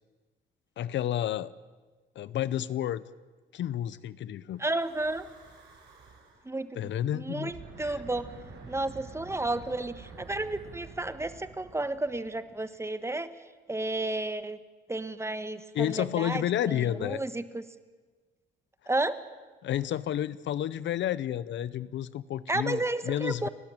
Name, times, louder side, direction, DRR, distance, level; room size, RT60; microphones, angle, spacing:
voice 1, 0.8-1.5 2.2-3.0 3.5-4.6 6.8-7.5 7.8-8.0 15.7-17.2 19.6-23.5, left 11 dB, 65° left, 18 dB, 0.7 m, -31 dB
Breathing / Wind, 4.5-6.5 7.4-12.8, right 4 dB, 60° right, 6.4 m, -49 dB
voice 2, 4.6-5.3 6.4-8.3 8.7-13.3 13.7-14.6 14.9-17.6 18.9-19.2 22.5-23.5, right 2 dB, 15° right, 12 dB, 1.2 m, -32 dB
30.0 x 12.0 x 8.8 m, 1.3 s
cardioid pair, 90°, 20 cm